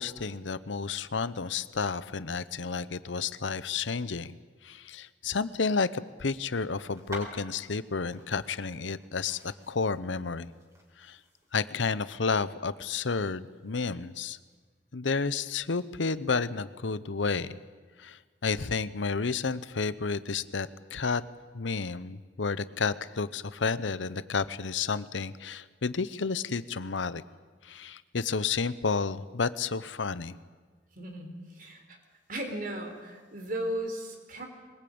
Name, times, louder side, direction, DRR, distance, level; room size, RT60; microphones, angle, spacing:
voice 1, 0.0-4.3 4.6-10.5 11.0-11.2 11.5-14.4 14.9-17.6 18.0-21.2 21.5-27.2 27.6-30.4, left 4 dB, 90° left, 15 dB, 0.8 m, -31 dB
sound 1, 6.9-14.6, equal, 15° right, 4.3 m, -50 dB
voice 2, 31.0-32.0 32.3-34.5, right 1 dB, 50° right, 5 dB, 3.8 m, -36 dB
22.5 x 20.5 x 8.7 m, 1.5 s
head